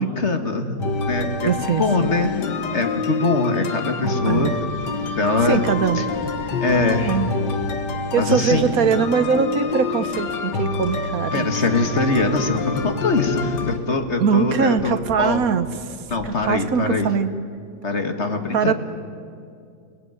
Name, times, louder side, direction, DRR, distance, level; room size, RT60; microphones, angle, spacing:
voice 1, 0.0-4.5 5.2-5.7 5.9-6.1 6.6-7.2 8.2-8.7 11.3-15.5 16.1-17.1 17.8-18.7, left 3 dB, 40° left, 6 dB, 2.1 m, -23 dB
sound 1, 0.8-13.8, left 4 dB, 75° left, 2.1 m, -27 dB
voice 2, 1.4-2.1 4.3-4.6 5.4-6.1 6.5-6.6 7.0-7.3 8.1-11.5 14.2-16.0 16.2-17.3 18.5-18.7, right 6 dB, 55° right, 12 dB, 1.4 m, -22 dB
sound 2, 4.0-7.7 8.0-9.6 9.9-10.3 10.7-11.1 11.3-14.0 14.5-15.2 16.0-16.4, left 1 dB, 20° right, 6.5 m, -40 dB
29.0 x 18.5 x 9.7 m, 2.4 s
omnidirectional pair, 1.9 m